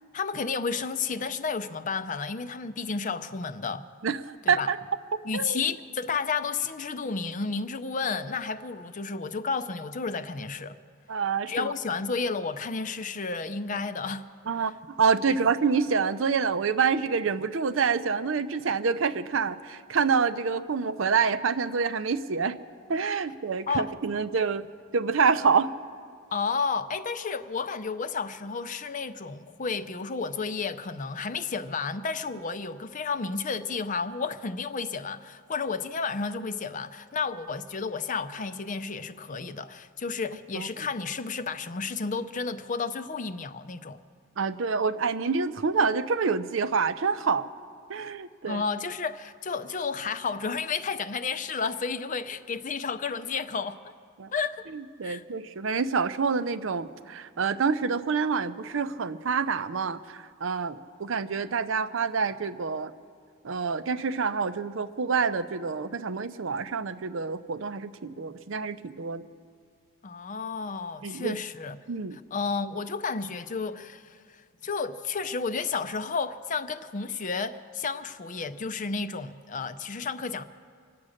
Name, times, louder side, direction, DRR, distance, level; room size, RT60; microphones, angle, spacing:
voice 1, 0.1-3.9 4.4-4.7 5.2-10.8 11.5-14.3 14.5-14.7 15.3-15.4 23.7-23.9 26.3-44.0 48.5-53.9 54.3-54.7 55.0-55.2 70.0-71.8 72.1-80.4, left 5 dB, 40° left, 0.5 m, -32 dB
voice 2, 11.1-11.7 14.5-14.7 15.0-22.5 22.9-24.7 24.9-25.7 40.5-40.7 44.4-47.5 47.9-48.6 54.2-54.3 54.7-62.9 63.4-69.2 71.0-71.3 71.9-72.2, right 5 dB, 65° right, 0.6 m, -27 dB
25.0 x 8.6 x 6.4 m
head